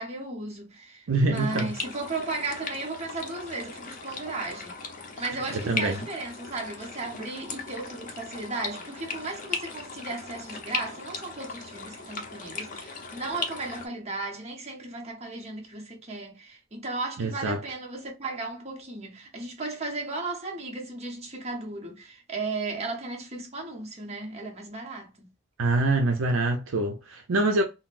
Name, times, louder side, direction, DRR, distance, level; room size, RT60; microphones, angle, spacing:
voice 1, 0.0-25.3, right 3 dB, 30° right, 0.9 m, -35 dB
voice 2, 1.1-1.7 5.5-6.0 17.2-17.6 25.6-27.6, right 2 dB, 75° right, 0.6 m, -25 dB
sound 1, 1.3-13.9, left 4 dB, 40° left, 0.6 m, -38 dB
3.8 x 2.0 x 2.5 m
head